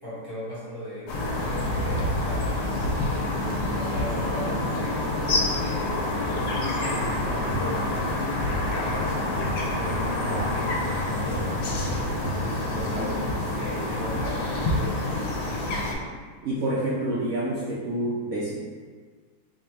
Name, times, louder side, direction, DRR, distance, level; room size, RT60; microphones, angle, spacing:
voice 1, 0.0-2.8 3.7-7.9 8.4-15.3, equal, 15° left, -10 dB, 0.9 m, -37 dB
sound 1, 1.1-15.9, left 2 dB, 80° left, 1.3 m, -27 dB
sound 2, 5.6-13.6, equal, 55° left, 1.4 m, -36 dB
voice 2, 13.0-13.3 16.4-18.5, right 1 dB, 65° right, -7 dB, 0.9 m, -28 dB
3.8 x 2.2 x 4.3 m, 1.5 s
omnidirectional pair, 1.8 m